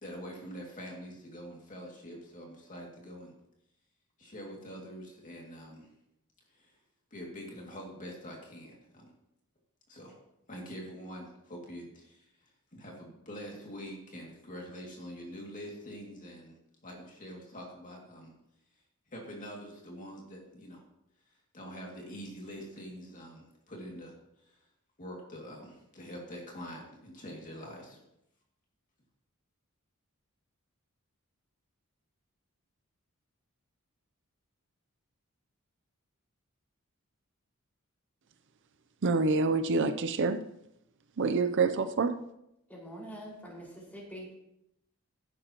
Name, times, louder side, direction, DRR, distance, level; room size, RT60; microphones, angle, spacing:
voice 1, 0.0-3.3 4.2-5.9 6.5-6.8 7.1-9.1 9.9-10.2 10.5-16.6 16.8-18.3 19.1-20.8 21.5-24.6 25.0-28.0, equal, 40° left, -1 dB, 2.4 m, -45 dB
voice 2, 39.0-40.4 41.2-42.2, right 4 dB, 60° right, 11 dB, 0.6 m, -27 dB
voice 3, 42.7-44.3, equal, 10° left, -4 dB, 5.1 m, -45 dB
15.5 x 11.0 x 3.0 m, 0.82 s
head